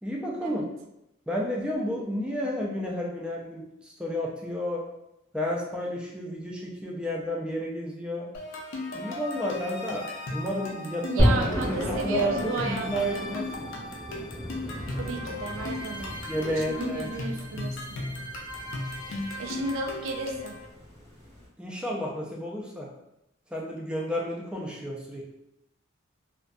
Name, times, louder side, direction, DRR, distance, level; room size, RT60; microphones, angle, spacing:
voice 1, 0.0-0.7 1.3-4.8 5.3-8.3 8.9-13.5 16.3-17.1 17.5-17.6 21.6-22.9 23.5-25.2, equal, 5° right, -2 dB, 0.3 m, -31 dB
sound 1, 8.3-20.7, left 2 dB, 70° left, 0.5 m, -36 dB
voice 2, 11.1-13.3 14.9-16.2 16.4-18.0 19.4-20.6, right 3 dB, 75° right, 2 dB, 0.4 m, -34 dB
sound 2, 11.2-21.5, equal, 15° left, 0.7 m, -33 dB
2.5 x 2.5 x 2.2 m, 0.87 s
head